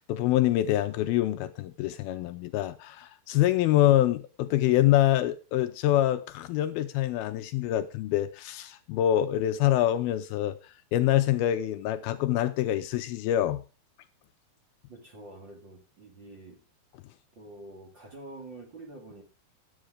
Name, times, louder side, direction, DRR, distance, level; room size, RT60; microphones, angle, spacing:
voice 1, 0.0-10.6 10.9-13.6, left 13 dB, 80° left, 2.4 m, -25 dB
voice 2, 14.9-16.6 17.3-19.2, right 2 dB, 35° right, 2.3 m, -46 dB
10.5 x 9.0 x 4.9 m
omnidirectional pair, 4.5 m